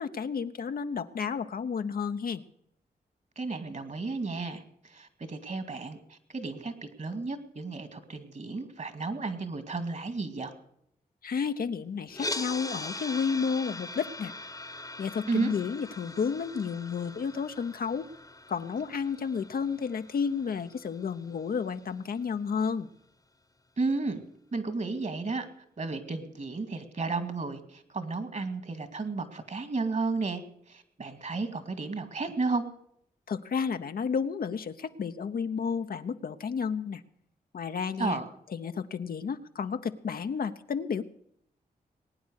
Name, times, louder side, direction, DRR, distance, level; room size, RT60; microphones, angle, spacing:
voice 1, 0.0-2.4 11.2-14.3 15.0-18.1 18.5-22.9 33.3-37.0 37.5-38.2 38.5-41.0, left 6 dB, 65° left, 8 dB, 0.9 m, -31 dB
voice 2, 3.4-10.5 15.3-15.5 23.8-24.2 24.5-25.5 25.8-30.4 30.7-32.6 38.0-38.3, right 3 dB, 50° right, 10 dB, 2.3 m, -33 dB
sound 1, 12.1-22.2, left 2 dB, 20° left, 1.1 m, -41 dB
20.5 x 9.4 x 6.5 m, 0.71 s
cardioid pair, 55°, 16 cm